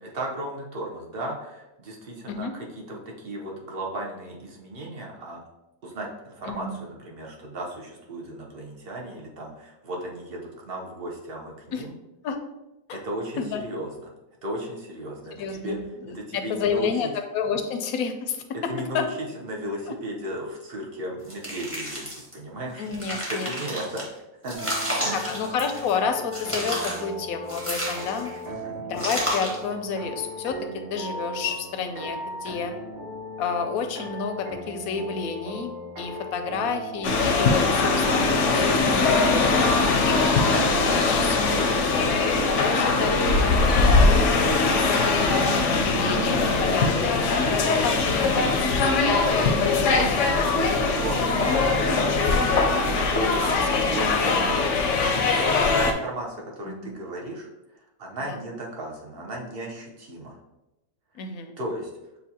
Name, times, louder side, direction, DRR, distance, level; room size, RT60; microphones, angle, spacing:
voice 1, 0.0-5.4 5.8-11.9 12.9-13.9 14.4-15.8 16.1-17.1 18.7-19.0 19.4-22.9 23.3-24.1 24.4-24.7 25.0-25.3 28.5-28.9 43.9-44.1 49.3-50.1 50.5-53.4 53.9-54.4 55.1-57.5 57.7-60.4 61.6-61.9, right 1 dB, 45° right, -1 dB, 1.0 m, -35 dB
voice 2, 15.3-19.1 19.9-20.0 22.8-23.5 25.1-28.3 28.8-32.7 33.4-39.4 40.1-44.5 45.3-47.2 47.8-49.0 49.6-49.9 53.4-54.9 56.7-56.9 58.3-58.4 61.1-61.5, left 5 dB, 85° left, 6 dB, 1.0 m, -30 dB
sound 1, 21.3-22.3 22.8-24.0 24.5-26.0 26.3-27.1 27.5-28.4 29.0-29.7, equal, 10° right, 1.1 m, -31 dB
sound 2, 24.5-41.4, equal, 85° right, 1.4 m, -37 dB
sound 3, 37.0-55.9, left 3 dB, 65° left, 0.9 m, -21 dB
6.6 x 2.7 x 2.8 m, 0.96 s
omnidirectional pair, 1.5 m